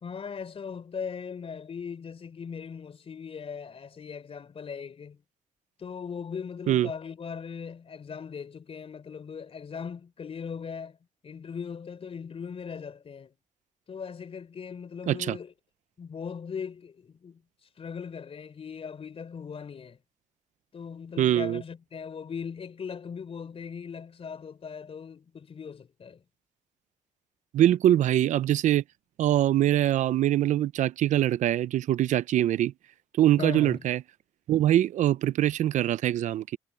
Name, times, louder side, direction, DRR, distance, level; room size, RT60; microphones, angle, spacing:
voice 1, 0.0-5.2 5.8-11.0 11.2-13.3 13.9-15.5 16.0-17.4 17.8-20.0 20.7-26.2 33.4-33.8, left 6 dB, 50° left, 4.0 m, -39 dB
voice 2, 15.1-15.4 21.2-21.6 27.5-28.8 29.2-32.7 33.2-34.0 34.5-36.6, right 12 dB, 80° right, 0.6 m, -23 dB
cardioid pair, 80°, 12 cm